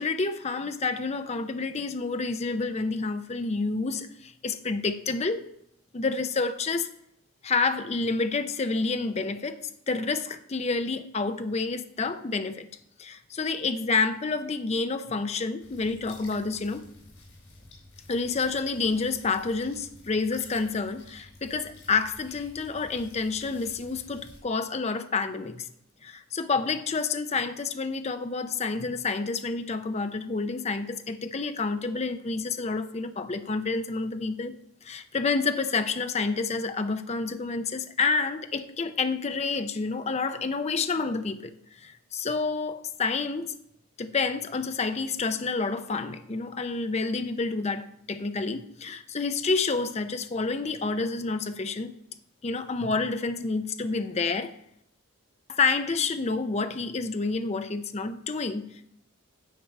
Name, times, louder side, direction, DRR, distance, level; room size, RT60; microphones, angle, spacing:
voice 1, 0.0-5.4 5.9-6.9 7.4-12.7 13.0-16.8 18.1-25.7 26.0-34.6 34.8-41.5 41.8-43.5 44.0-51.9 52.4-54.6 55.5-58.6, left 4 dB, 30° left, 0.5 m, -29 dB
sound 1, 15.6-24.4, left 2 dB, 80° left, 4.0 m, -51 dB
10.0 x 4.5 x 6.5 m
head